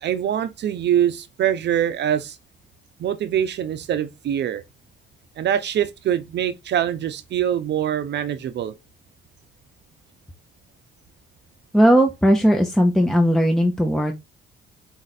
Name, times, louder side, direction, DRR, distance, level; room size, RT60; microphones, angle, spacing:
voice 1, 0.0-2.4 3.0-4.6 5.4-8.7, right 10 dB, 60° right, 0.6 m, -24 dB
voice 2, 11.7-14.1, equal, 5° left, 0.7 m, -17 dB
4.3 x 2.5 x 4.0 m
cardioid pair, 90°, 20 cm